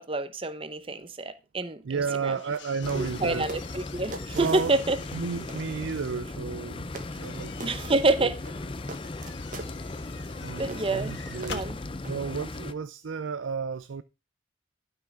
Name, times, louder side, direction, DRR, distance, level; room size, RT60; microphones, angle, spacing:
voice 1, 0.0-1.8 2.2-2.3 2.9-5.0 7.6-8.3 10.6-11.2 11.5-11.8, right 2 dB, 30° right, 0.9 m, -27 dB
voice 2, 1.8-3.5 4.3-4.8 5.1-8.3 9.3-9.5 10.4-11.6 12.1-14.0, right 5 dB, 90° right, 0.5 m, -33 dB
sound 1, 2.0-6.2 6.9-11.7, left 5 dB, 70° left, 1.5 m, -47 dB
sound 2, 2.5-2.6 2.9-3.1 3.5-5.2 5.5-5.7 6.5-6.6 6.9-7.3 7.6-8.1 8.4-9.7 10.2-10.3 10.7-11.0 11.4-12.2, right 3 dB, 45° right, 1.4 m, -42 dB
sound 3, 2.8-12.7, left 2 dB, 25° left, 0.6 m, -37 dB
11.5 x 5.9 x 4.8 m
head